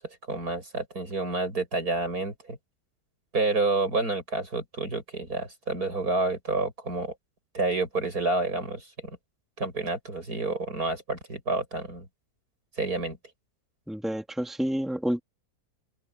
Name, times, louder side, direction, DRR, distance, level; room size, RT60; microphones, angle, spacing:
voice 1, 0.3-2.6 3.3-7.1 7.5-9.2 9.6-12.1 12.8-13.2, right 3 dB, 70° right, 8.7 m, -29 dB
voice 2, 13.9-15.2, equal, ahead, 3.0 m, -29 dB
open air
omnidirectional pair, 1.7 m